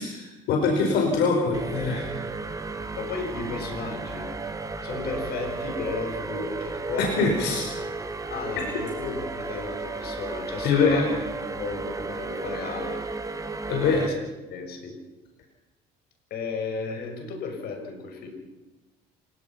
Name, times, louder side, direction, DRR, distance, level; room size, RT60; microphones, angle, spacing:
voice 1, 0.0-2.2 7.0-7.6 10.6-11.0 13.7-14.1, left 4 dB, 85° left, 1 dB, 5.1 m, -23 dB
sound 1, 1.5-14.1, right 3 dB, 20° right, 2.1 m, -34 dB
voice 2, 3.0-4.3 4.8-7.4 8.3-13.1 14.0-14.2 14.4-15.0 16.3-18.3, left 4 dB, 70° left, 4 dB, 6.2 m, -34 dB
29.0 x 18.0 x 5.9 m, 1.1 s
cardioid pair, 110°, 17 cm